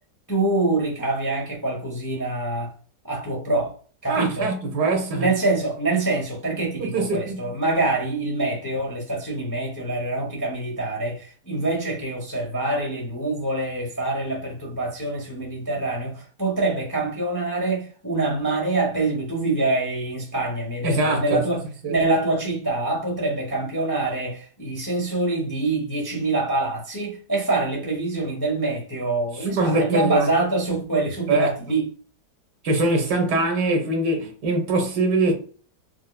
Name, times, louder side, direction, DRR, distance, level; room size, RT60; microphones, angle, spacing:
voice 1, 0.3-2.7 3.0-3.7 4.0-4.5 5.1-31.9, right 2 dB, 20° left, 0.5 m, -25 dB
voice 2, 4.1-5.3 6.8-7.4 20.8-21.4 21.8-21.9 29.4-30.3 31.3-31.5 32.6-35.3, right 2 dB, 70° right, 1.5 m, -22 dB
4.6 x 2.3 x 2.2 m
omnidirectional pair, 1.8 m